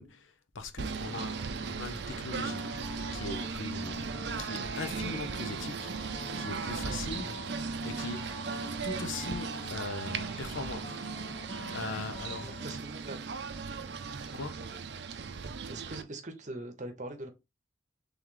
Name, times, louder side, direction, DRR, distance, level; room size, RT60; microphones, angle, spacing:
voice 1, 0.0-2.8 3.1-4.1 4.4-7.5 7.8-8.4 8.8-11.1 11.7-12.5 14.3-14.7, left 3 dB, 85° left, 0.7 m, -40 dB
Singing / Bird, 0.8-16.0, right 5 dB, 60° right, 0.4 m, -37 dB
sound 1, 1.1-12.8, left 4 dB, 40° left, 0.3 m, -47 dB
voice 2, 6.9-7.2 8.5-8.7 12.4-13.3 15.7-17.3, right 2 dB, 40° right, 0.8 m, -43 dB
3.5 x 3.1 x 3.7 m
head